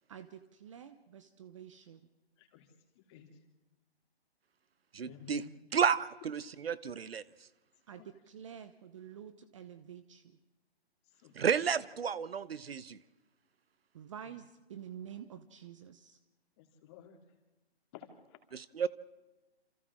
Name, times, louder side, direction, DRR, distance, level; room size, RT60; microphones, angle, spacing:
voice 1, 0.1-2.0 7.9-10.4 13.9-16.2, right 9 dB, 30° right, 12 dB, 0.9 m, -49 dB
voice 2, 2.4-2.7 2.9-3.3 5.0-5.5 8.0-8.1 11.2-11.3 16.6-17.2 17.9-18.4, left 8 dB, 25° left, 4 dB, 2.9 m, -54 dB
voice 3, 4.9-5.4 5.7-7.2 11.3-13.0 18.5-18.9, right 7 dB, 65° right, 18 dB, 1.0 m, -32 dB
28.5 x 28.0 x 3.7 m, 1.1 s
hypercardioid pair, 155°, 32 cm